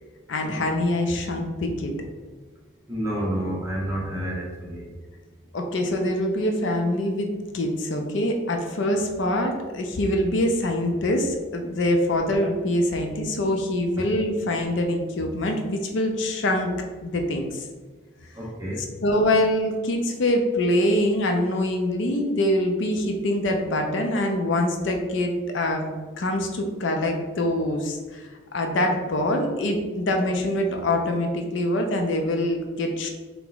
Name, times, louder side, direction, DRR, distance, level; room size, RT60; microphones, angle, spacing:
voice 1, 0.3-1.9 5.5-16.7 17.0-17.7 19.0-25.8 26.2-33.1, left 1 dB, 60° left, 3 dB, 0.5 m, -24 dB
voice 2, 2.9-4.8 18.4-18.8, right 1 dB, 15° right, -3 dB, 0.8 m, -29 dB
3.4 x 2.9 x 3.9 m, 1.4 s
head